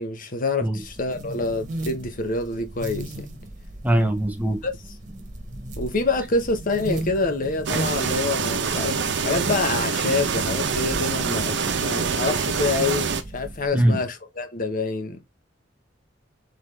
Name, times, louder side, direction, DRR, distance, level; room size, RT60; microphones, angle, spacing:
voice 1, 0.0-3.1 4.6-4.7 5.8-15.2, left 3 dB, 50° left, 0.9 m, -26 dB
sound 1, 0.8-13.7, right 1 dB, 40° right, 1.1 m, -37 dB
voice 2, 3.8-4.6 11.7-11.8 13.7-14.0, right 1 dB, 10° right, 0.8 m, -21 dB
sound 2, 7.7-13.2, right 5 dB, 70° right, 0.7 m, -25 dB
3.9 x 3.7 x 3.2 m
head